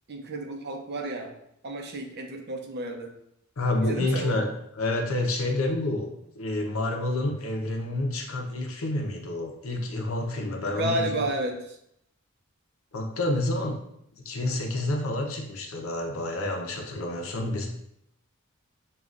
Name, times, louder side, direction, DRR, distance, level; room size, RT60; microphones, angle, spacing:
voice 1, 0.1-1.3 1.6-3.1 3.8-4.4 10.6-11.8, right 1 dB, 50° right, 3 dB, 0.6 m, -31 dB
voice 2, 3.6-6.1 6.4-11.1 12.9-13.8 14.2-17.7, left 2 dB, 70° left, 2 dB, 0.7 m, -29 dB
6.8 x 2.4 x 2.4 m, 0.74 s
head